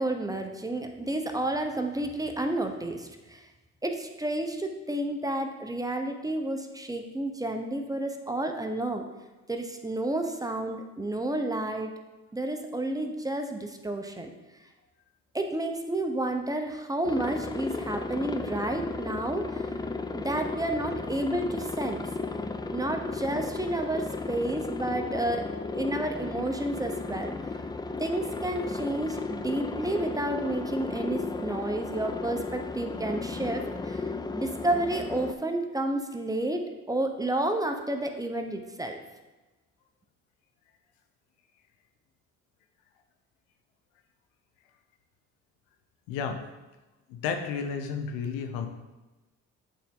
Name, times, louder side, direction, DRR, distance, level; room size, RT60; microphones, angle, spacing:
voice 1, 0.0-3.5 3.8-9.1 9.5-11.9 12.3-14.3 15.3-19.7 20.1-22.1 22.7-27.3 28.0-39.0, right 1 dB, 10° right, 5 dB, 0.9 m, -31 dB
Aircraft, 17.0-35.3, left 3 dB, 15° left, 0.4 m, -34 dB
voice 2, 46.1-46.4 47.1-48.7, left 6 dB, 90° left, 6 dB, 0.8 m, -32 dB
8.4 x 4.2 x 3.8 m, 1.1 s
supercardioid pair, 65°, 31 cm